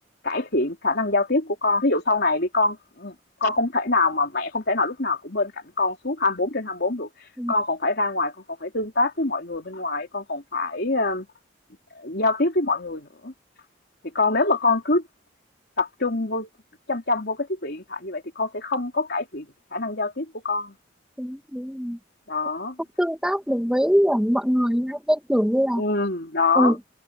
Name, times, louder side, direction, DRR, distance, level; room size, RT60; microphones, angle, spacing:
voice 1, 0.2-3.1 3.4-5.5 5.8-7.1 7.5-8.3 8.6-11.3 11.9-13.3 14.1-15.0 15.8-16.5 16.9-19.5 19.7-20.7 22.3-22.8 25.8-26.8, left 3 dB, 55° left, 3.5 m, -24 dB
voice 2, 21.2-22.0 23.0-25.8 26.6-26.8, equal, 5° right, 2.3 m, -22 dB
head